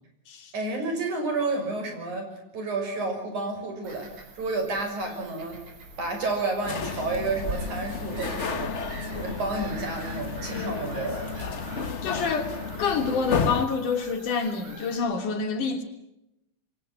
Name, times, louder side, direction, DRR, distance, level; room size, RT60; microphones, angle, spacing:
voice 1, 0.5-2.3 2.5-5.6 6.0-8.7 9.0-11.3, right 3 dB, 75° right, 5 dB, 7.8 m, -30 dB
Bird vocalization bird call bird song / Gull seagull, 3.8-15.0, right 3 dB, 55° right, 5.8 m, -46 dB
sound 1, 5.4-12.1, right 1 dB, 35° right, 5.9 m, -42 dB
sound 2, 6.6-13.7, left 5 dB, 60° left, 0.7 m, -32 dB
voice 2, 12.0-15.8, left 5 dB, 85° left, 4 dB, 4.6 m, -27 dB
28.0 x 23.5 x 5.9 m, 0.84 s
omnidirectional pair, 3.5 m